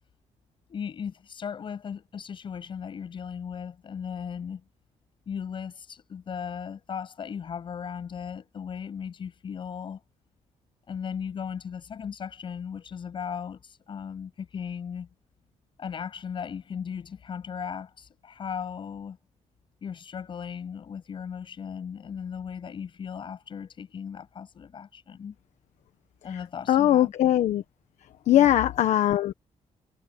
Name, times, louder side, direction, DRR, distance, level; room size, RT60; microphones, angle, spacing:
voice 1, 0.7-4.6 5.3-10.0 10.9-15.1 15.8-19.2 19.8-25.4 26.2-27.1 28.3-28.5, left 7 dB, 40° left, 7.1 m, -37 dB
voice 2, 26.7-27.6 28.3-29.3, left 12 dB, 75° left, 1.2 m, -21 dB
cardioid pair, 155°, 12 cm